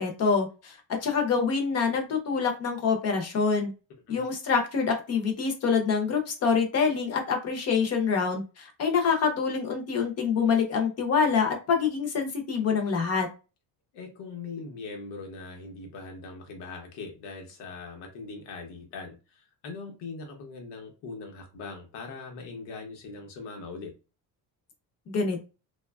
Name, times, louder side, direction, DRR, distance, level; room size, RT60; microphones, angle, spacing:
voice 1, 0.0-3.7 4.1-13.3 25.1-25.4, left 5 dB, 40° left, 0.7 m, -26 dB
voice 2, 13.9-23.9, left 4 dB, 85° left, 1.0 m, -41 dB
3.0 x 2.3 x 2.3 m
cardioid pair, 170°, 40 cm